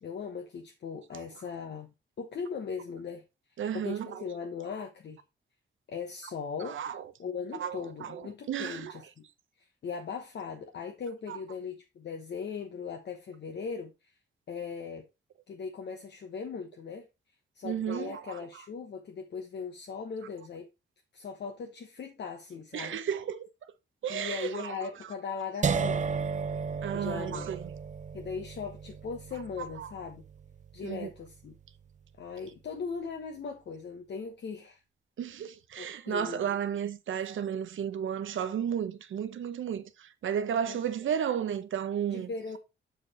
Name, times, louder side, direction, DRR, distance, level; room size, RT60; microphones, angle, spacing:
voice 1, 0.0-3.2 3.7-5.2 5.9-6.8 7.2-9.2 9.6-14.1 14.5-15.1 15.5-17.1 17.5-20.7 21.1-23.0 24.1-26.0 26.9-27.5 28.1-30.2 30.7-31.5 32.2-34.8 35.8-36.5 37.2-37.3 40.7-40.8 42.1-42.6, left 5 dB, 60° left, 1.0 m, -39 dB
voice 2, 3.6-4.2 6.6-7.1 7.6-8.9 11.3-11.4 17.6-18.4 22.7-23.5 24.0-24.9 26.8-27.7 29.8-29.9 30.8-31.1 35.2-42.3, right 8 dB, 75° right, 0.9 m, -33 dB
sound 1, 25.6-31.6, right 5 dB, 35° right, 0.6 m, -34 dB
6.7 x 4.9 x 4.2 m
wide cardioid pair, 135°, 20 cm